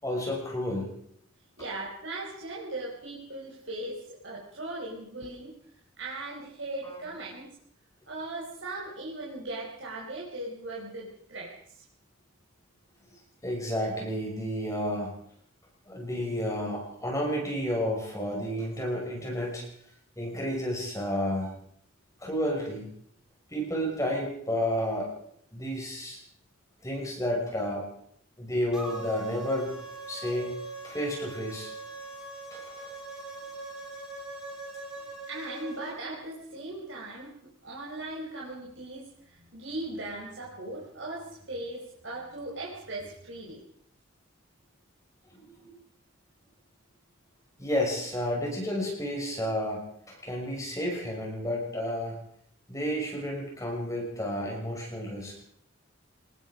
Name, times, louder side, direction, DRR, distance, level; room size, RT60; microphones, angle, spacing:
voice 1, 0.0-0.9 6.8-7.0 13.4-15.1 15.9-19.7 20.2-21.5 22.2-22.9 23.5-25.1 25.5-26.2 26.8-27.8 28.4-29.8 30.1-30.6 30.8-31.7 32.5-32.9 45.3-45.7 47.6-52.2 52.7-55.4, equal, 15° left, -1 dB, 6.2 m, -31 dB
voice 2, 1.6-5.5 6.0-7.5 8.1-11.8 35.3-37.3 37.6-43.6, right 2 dB, 60° right, -3 dB, 4.9 m, -38 dB
sound 1, 28.7-35.9, right 3 dB, 5° right, 7.7 m, -41 dB
25.0 x 20.0 x 5.2 m, 0.68 s
head